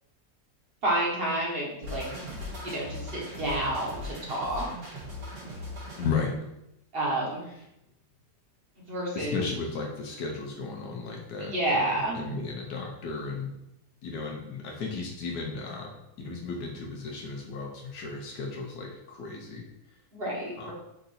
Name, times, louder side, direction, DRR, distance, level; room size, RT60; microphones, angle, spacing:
voice 1, 0.8-2.0 2.6-4.7 6.9-7.4 8.8-9.4 11.4-12.3 20.1-20.7, right 1 dB, 40° right, -4 dB, 1.1 m, -29 dB
sound 1, 1.8-6.1, left 1 dB, 85° right, 2.2 m, -39 dB
voice 2, 6.0-6.4 7.6-7.7 9.1-13.5 14.0-15.9 16.2-19.7 20.6-20.7, left 4 dB, 85° left, 0 dB, 1.3 m, -34 dB
4.6 x 2.6 x 4.0 m, 0.85 s
omnidirectional pair, 1.7 m